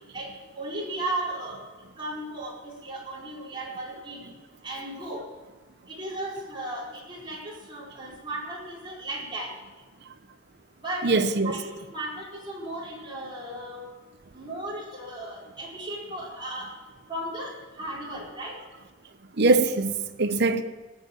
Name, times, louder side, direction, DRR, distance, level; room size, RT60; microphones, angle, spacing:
voice 1, 0.5-1.6 2.0-4.3 4.6-5.2 5.9-9.5 10.8-11.6 11.9-13.9 14.3-16.7 17.1-18.5, right 1 dB, 25° right, 4.5 m, -35 dB
voice 2, 11.0-11.6 19.4-20.6, right 3 dB, 55° right, 0.9 m, -22 dB
18.5 x 7.5 x 7.3 m
head